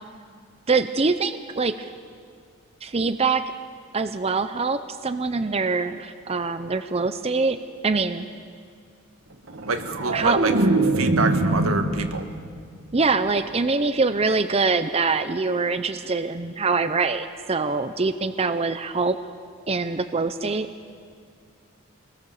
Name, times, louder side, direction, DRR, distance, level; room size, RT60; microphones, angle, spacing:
voice 1, 0.7-1.9 2.8-3.4 3.9-7.6 7.8-8.3 10.1-10.7 12.9-19.2 19.7-20.7, right 4 dB, 30° right, 9 dB, 0.6 m, -24 dB
sound 1, 9.5-12.7 13.0-13.4, right 2 dB, 60° right, 1.6 m, -23 dB
voice 2, 9.7-10.5 10.9-12.3, right 3 dB, 85° right, 6 dB, 1.8 m, -26 dB
26.5 x 20.5 x 7.0 m, 2.1 s
head